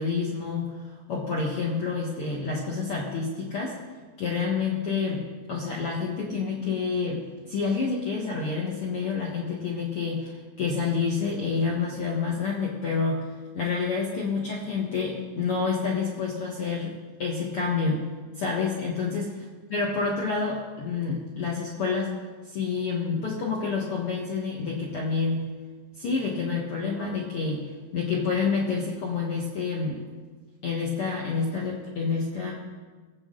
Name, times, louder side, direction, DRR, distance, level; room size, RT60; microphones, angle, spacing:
voice 1, 0.0-3.8 4.2-5.2 5.5-13.3 13.5-16.9 17.2-18.0 18.4-19.3 19.7-22.1 22.4-25.4 25.9-27.6 27.9-30.0 30.6-32.5, left 5 dB, 80° left, -2 dB, 1.2 m, -28 dB
21.0 x 8.5 x 3.8 m, 1.4 s
omnidirectional pair, 4.8 m